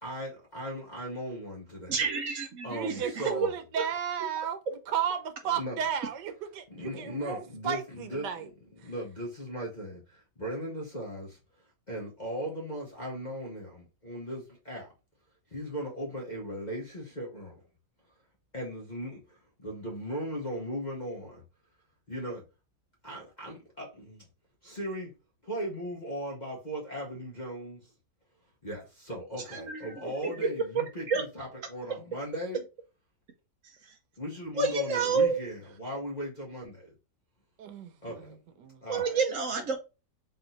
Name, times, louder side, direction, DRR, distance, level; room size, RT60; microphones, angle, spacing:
voice 1, 0.0-2.0 2.6-3.5 5.5-5.8 6.7-11.4 11.9-14.9 15.5-17.6 18.5-21.4 22.1-22.4 23.0-24.3 24.6-25.1 25.4-27.9 28.6-32.6 34.2-36.9 38.0-38.4 38.8-39.2, equal, 30° left, 1.0 m, -38 dB
voice 2, 1.9-3.3 4.7-4.8 29.5-30.3 30.7-31.2 34.6-35.4 38.9-39.8, right 4 dB, 60° right, 0.9 m, -29 dB
voice 3, 2.7-4.6 4.9-8.5 30.0-30.1 37.6-38.8, right 8 dB, 85° right, 1.4 m, -34 dB
4.0 x 3.0 x 4.0 m
omnidirectional pair, 1.8 m